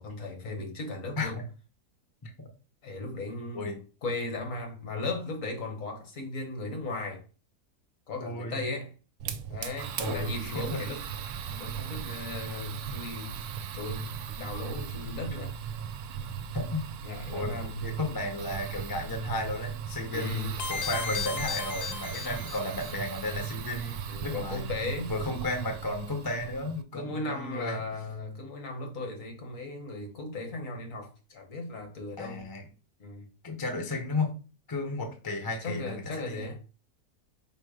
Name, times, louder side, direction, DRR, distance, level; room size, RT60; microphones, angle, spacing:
voice 1, 0.0-1.4 2.8-3.7 4.0-7.2 8.1-8.9 9.5-11.0 11.5-13.4 13.7-15.5 17.0-17.9 20.1-20.6 24.1-25.1 26.9-32.5 33.0-33.2 35.6-36.6, left 2 dB, 55° left, 1.5 m, -36 dB
voice 2, 8.2-8.6 10.0-10.8 16.5-16.9 17.3-24.6 25.1-27.8 32.2-32.7 33.4-34.3 34.7-36.4, left 2 dB, 20° left, 0.6 m, -34 dB
Fire, 9.2-26.8, right 8 dB, 75° right, 1.1 m, -37 dB
sound 1, 20.6-22.9, left 6 dB, 80° left, 1.3 m, -35 dB
5.2 x 2.1 x 4.8 m
omnidirectional pair, 1.7 m